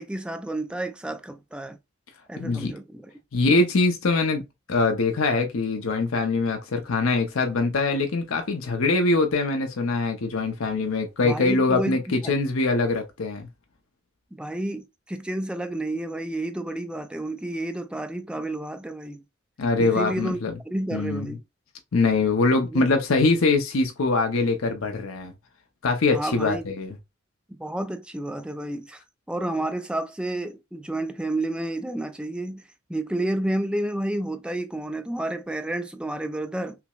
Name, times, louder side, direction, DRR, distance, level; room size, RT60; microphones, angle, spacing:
voice 1, 0.0-1.8 2.3-3.1 11.2-12.3 14.3-19.2 19.8-21.4 22.7-22.9 26.1-26.7 27.5-29.0 29.3-32.6 32.9-36.8, right 1 dB, 5° right, 0.3 m, -30 dB
voice 2, 2.4-2.7 3.3-4.4 4.7-13.5 19.6-20.5 20.9-21.3 21.9-25.3 25.8-27.0, left 3 dB, 75° left, 0.6 m, -23 dB
5.7 x 2.1 x 2.3 m
head